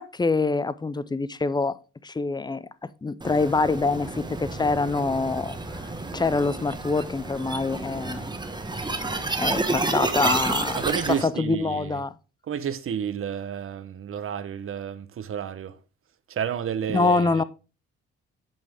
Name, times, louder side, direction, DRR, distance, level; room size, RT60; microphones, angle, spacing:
voice 1, 0.0-1.8 2.0-2.6 3.0-8.4 9.4-12.1 16.9-17.4, left 3 dB, 15° left, 0.5 m, -25 dB
sound 1, 3.2-11.2, right 2 dB, 15° right, 1.1 m, -30 dB
voice 2, 10.8-11.8 12.5-15.7 16.3-17.3, right 8 dB, 45° right, 0.8 m, -30 dB
8.0 x 5.3 x 3.5 m
supercardioid pair, 60°, 31 cm